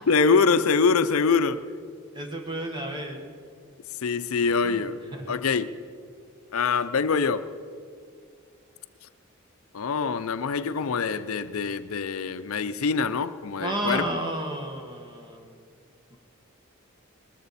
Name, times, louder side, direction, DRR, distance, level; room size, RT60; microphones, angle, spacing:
voice 1, 0.1-1.6 4.0-5.0 5.3-5.7 6.5-7.5 9.7-14.0, left 5 dB, 80° left, 13 dB, 0.5 m, -24 dB
voice 2, 2.1-3.2 4.6-5.4 13.6-15.6 16.1-16.2, right 1 dB, 20° right, 3 dB, 1.4 m, -32 dB
20.0 x 14.0 x 4.2 m, 2.2 s
head